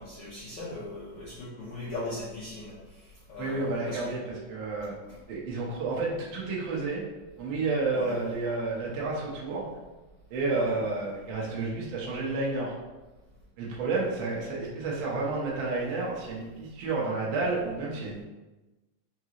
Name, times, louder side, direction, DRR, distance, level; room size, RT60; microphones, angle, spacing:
voice 1, 0.0-2.8 3.3-4.1 7.9-8.2 10.5-10.8, left 2 dB, 75° left, -10 dB, 1.3 m, -38 dB
voice 2, 3.4-4.9 5.3-7.0 7.4-9.7 10.3-12.7 13.6-18.2, right 3 dB, 85° right, -4 dB, 1.0 m, -30 dB
5.2 x 2.5 x 2.9 m, 1.1 s
omnidirectional pair, 3.6 m